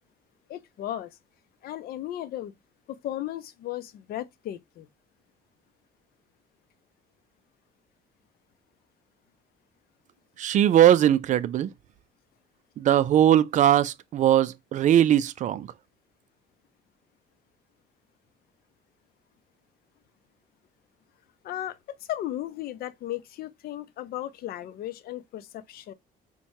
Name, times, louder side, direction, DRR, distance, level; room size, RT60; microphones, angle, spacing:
voice 1, 0.5-1.2 1.6-2.5 2.9-4.9 21.4-21.8 22.1-25.9, left 13 dB, 65° left, 0.5 m, -35 dB
voice 2, 10.4-11.7 12.8-15.7, right 11 dB, 45° right, 0.4 m, -20 dB
4.4 x 2.2 x 2.7 m
cardioid pair, 110°, 17 cm